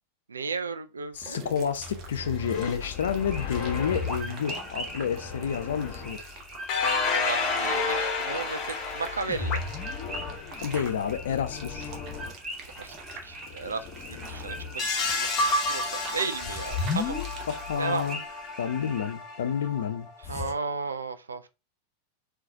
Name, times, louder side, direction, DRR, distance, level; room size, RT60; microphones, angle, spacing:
voice 1, 0.3-1.4 7.1-9.6 12.8-13.0 13.2-17.2 17.8-18.0 20.2-21.5, right 4 dB, 75° right, 0.4 m, -34 dB
voice 2, 1.1-6.2 10.6-11.9 17.5-18.2 18.6-20.1, left 7 dB, 60° left, 0.5 m, -29 dB
sound 1, 1.1-18.1, right 4 dB, 35° right, 0.7 m, -46 dB
sound 2, 1.8-6.1 6.7-12.3 13.5-20.5, left 4 dB, 35° left, 0.8 m, -32 dB
sound 3, 2.8-19.1, equal, 10° right, 1.3 m, -43 dB
3.9 x 2.2 x 2.6 m
figure-of-eight pair, 90°, 0 cm